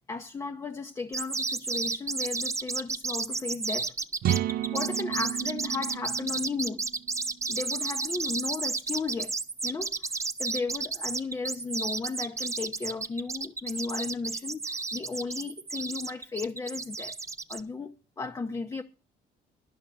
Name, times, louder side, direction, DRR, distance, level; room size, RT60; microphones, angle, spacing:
voice 1, 0.1-3.9 4.4-6.8 7.5-9.3 9.6-9.9 10.4-17.2 17.5-18.8, left 4 dB, 20° left, 0.7 m, -35 dB
sound 1, 1.1-17.6, right 4 dB, 15° right, 0.7 m, -32 dB
sound 2, 4.2-8.0, right 12 dB, 65° right, 0.7 m, -32 dB
11.5 x 5.6 x 7.7 m
cardioid pair, 110°, 17 cm